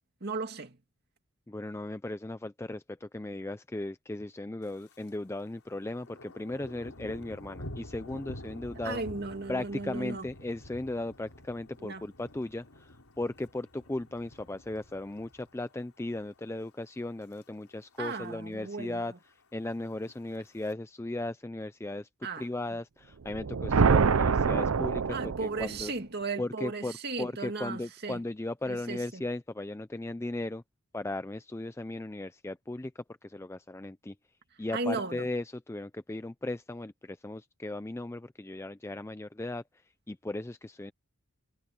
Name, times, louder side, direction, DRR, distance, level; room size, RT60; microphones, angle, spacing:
voice 1, 0.2-0.8 8.8-10.3 11.8-12.0 18.0-19.2 22.2-22.5 25.1-28.2 28.6-29.2 34.7-35.3, right 3 dB, 50° right, 2.2 m, -36 dB
voice 2, 1.5-9.0 9.5-19.1 19.5-22.1 22.4-25.9 26.4-30.6 30.9-32.9 33.2-34.1 34.6-39.6 40.1-40.9, left 2 dB, 10° left, 0.4 m, -37 dB
Thunder, 4.6-5.2 5.5-15.8 16.2-16.5 17.0-17.4 17.7-17.8 18.0-18.1 18.4-19.0 19.8-20.7, left 1 dB, 80° left, 4.1 m, -48 dB
sound 1, 23.3-25.9, right 5 dB, 75° right, 0.6 m, -25 dB
head